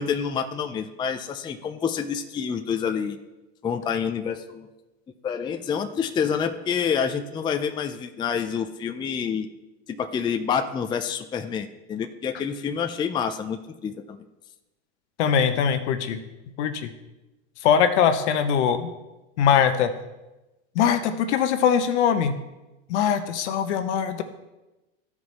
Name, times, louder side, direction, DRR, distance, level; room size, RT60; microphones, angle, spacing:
voice 1, 0.0-3.2 3.6-4.7 5.2-9.5 10.0-14.2, left 7 dB, 15° left, 6 dB, 0.4 m, -28 dB
voice 2, 15.2-16.2 16.6-16.9 17.6-18.9 19.4-19.9 20.7-22.4 22.9-24.2, left 8 dB, 75° left, 9 dB, 1.0 m, -21 dB
13.5 x 4.8 x 4.1 m, 1.0 s
hypercardioid pair, 110°, 35 cm